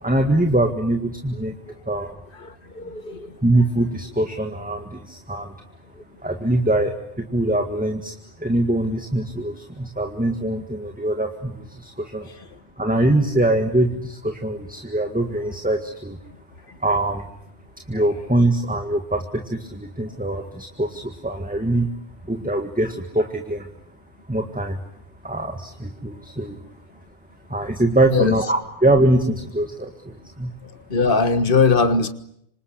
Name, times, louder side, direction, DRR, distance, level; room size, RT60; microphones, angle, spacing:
voice 1, 0.0-1.5 1.9-2.2 3.4-5.5 6.2-12.3 12.8-16.2 16.8-17.3 17.9-21.9 22.3-23.7 24.3-24.8 25.2-26.6 27.5-30.5, right 1 dB, 5° right, 1.9 m, -23 dB
voice 2, 2.4-3.4 6.0-6.1 28.1-28.3 30.9-32.1, left 4 dB, 45° left, 1.7 m, -20 dB
27.0 x 25.5 x 8.3 m
omnidirectional pair, 1.2 m